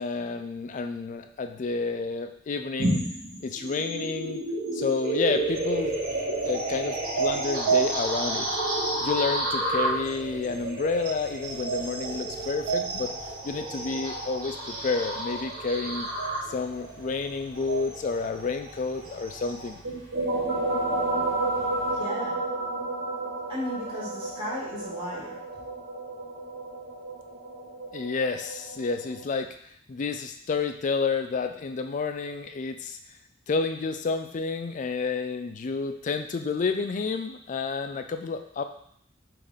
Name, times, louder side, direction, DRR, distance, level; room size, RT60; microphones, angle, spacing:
voice 1, 0.0-3.0 3.4-4.4 4.7-6.0 6.5-8.5 9.0-13.1 13.4-16.1 16.5-19.8 27.9-29.5 29.9-33.0 33.5-38.6, left 4 dB, 40° left, 7 dB, 0.3 m, -30 dB
sound 1, 2.8-19.7, right 2 dB, 45° right, 1.1 m, -30 dB
Engine, 5.3-22.0, equal, 70° right, 1.8 m, -50 dB
sound 2, 19.8-29.2, right 2 dB, 85° right, 1.4 m, -31 dB
voice 2, 21.9-22.4 23.5-25.4, left 1 dB, 25° right, -7 dB, 1.6 m, -35 dB
5.5 x 2.5 x 3.5 m, 0.66 s
head